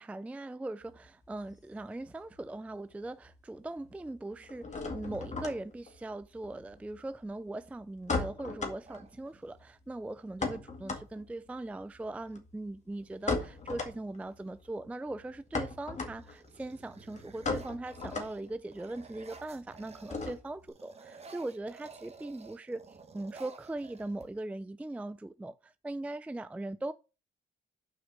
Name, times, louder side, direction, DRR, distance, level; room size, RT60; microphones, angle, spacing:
voice 1, 0.0-26.9, right 2 dB, 5° right, 0.3 m, -40 dB
sound 1, 0.8-2.5 2.7-3.4 3.7-20.7, left 3 dB, 35° left, 1.9 m, -39 dB
sound 2, 8.8-9.8 11.5-11.6 11.9-12.4 13.0-14.5 15.1-15.5 15.9-20.4 20.7-24.6, right 4 dB, 30° right, 1.4 m, -54 dB
6.4 x 4.8 x 6.3 m
cardioid pair, 90°, 20 cm